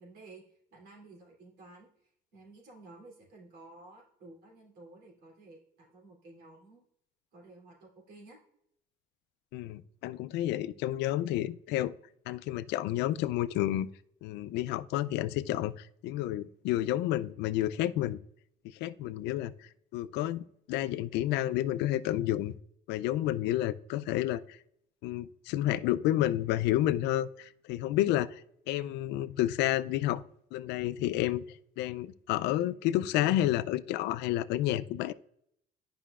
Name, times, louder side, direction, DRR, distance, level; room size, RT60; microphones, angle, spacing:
voice 1, 0.0-1.9 2.3-6.9 7.3-8.4, right 2 dB, 80° right, -2 dB, 3.1 m, -53 dB
voice 2, 9.5-11.9 12.3-13.9 14.2-18.2 18.8-19.5 19.9-22.5 22.9-24.4 25.0-28.4 28.7-30.2 30.5-35.1, left 13 dB, 90° left, 15 dB, 0.4 m, -30 dB
10.0 x 5.6 x 2.4 m, 0.71 s
cardioid pair, 110°, 17 cm